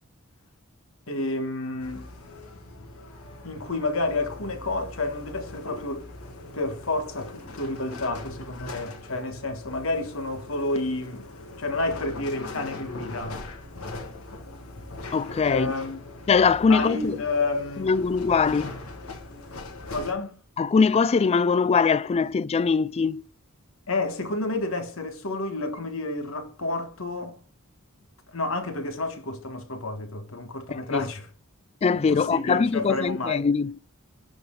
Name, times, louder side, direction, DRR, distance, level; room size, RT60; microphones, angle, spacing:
voice 1, 1.1-2.1 3.4-6.1 6.5-11.3 11.6-13.4 15.5-16.0 16.7-17.9 19.9-20.4 23.9-27.4 28.3-31.3 31.9-33.4, left 2 dB, 65° left, 1.5 m, -30 dB
sound 1, 1.8-20.1, left 2 dB, 85° left, 2.0 m, -41 dB
voice 2, 15.1-15.7 16.3-17.2 17.8-18.7 20.6-23.2 30.7-31.0 31.8-33.7, left 5 dB, 30° left, 0.3 m, -22 dB
12.0 x 4.2 x 3.9 m
head